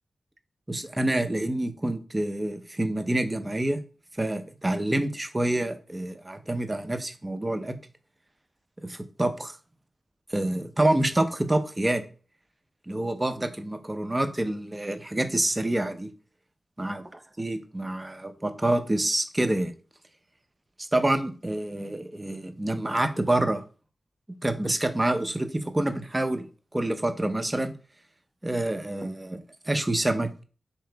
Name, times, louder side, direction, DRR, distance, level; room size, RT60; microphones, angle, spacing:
voice 1, 0.7-3.8 4.2-7.7 8.8-9.5 10.3-12.0 12.9-16.1 16.8-19.7 20.8-23.6 24.4-26.5 26.7-27.7 28.4-30.3, right 1 dB, 25° right, 9 dB, 0.6 m, -27 dB
3.7 x 3.0 x 3.4 m, 0.37 s
cardioid pair, 50°, 0 cm